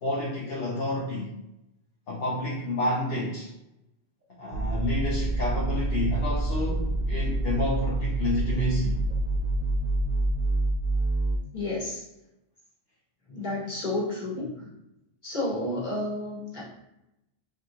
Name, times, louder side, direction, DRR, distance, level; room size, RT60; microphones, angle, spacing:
voice 1, 0.0-1.3 2.1-3.5 4.4-9.0, left 1 dB, 65° left, -6 dB, 1.0 m, -29 dB
sound 1, 4.5-11.4, right 2 dB, 70° right, 0.8 m, -27 dB
voice 2, 11.5-12.0 13.3-14.5 15.2-16.6, left 2 dB, 50° left, -6 dB, 1.6 m, -31 dB
4.9 x 2.5 x 2.8 m, 0.88 s
omnidirectional pair, 1.0 m